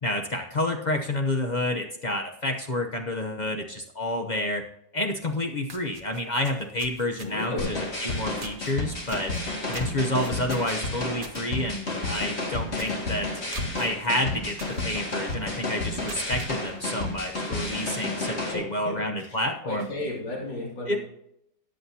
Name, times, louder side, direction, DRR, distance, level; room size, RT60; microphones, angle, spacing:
voice 1, 0.0-4.6 4.9-9.3 9.7-13.3 13.8-19.9 20.9-21.0, left 1 dB, 50° left, 3 dB, 0.5 m, -29 dB
sound 1, 5.2-5.3 5.6-7.6 8.4-8.7 9.1-11.4 11.8-12.0 12.3-12.4 12.7-13.0 13.5-13.9 14.6-14.8 15.3-15.4 15.9-16.5, right 4 dB, 30° right, 1.2 m, -42 dB
voice 2, 7.2-7.8 17.9-18.0 18.5-19.3 19.6-21.0, left 1 dB, 80° left, -3 dB, 3.4 m, -34 dB
sound 2, 7.6-18.5, left 2 dB, 35° left, 2.4 m, -31 dB
14.0 x 9.8 x 2.8 m, 0.76 s
omnidirectional pair, 2.0 m